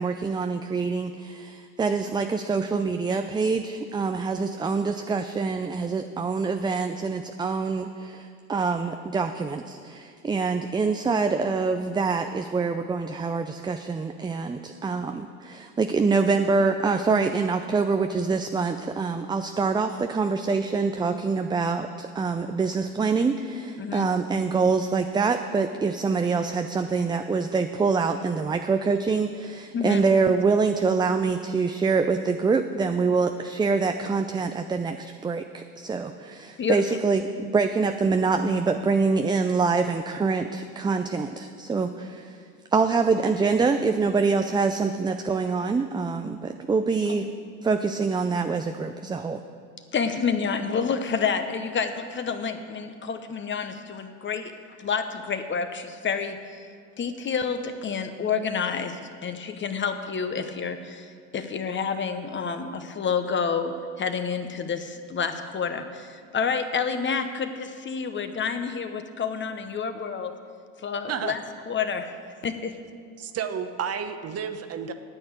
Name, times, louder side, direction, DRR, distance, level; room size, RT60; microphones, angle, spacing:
voice 1, 0.0-42.4 42.7-47.3 47.6-49.4, right 4 dB, 10° right, 7 dB, 0.4 m, -25 dB
voice 2, 23.8-24.1 29.7-30.1 36.6-36.8 49.9-54.5 54.8-56.4 57.0-61.1 61.3-70.3 70.8-71.4 71.7-72.2 72.4-72.7, left 6 dB, 30° left, 8 dB, 1.1 m, -29 dB
voice 3, 73.2-74.9, right 7 dB, 40° right, 9 dB, 1.1 m, -31 dB
9.8 x 8.7 x 8.2 m, 2.1 s
supercardioid pair, 95°, 39 cm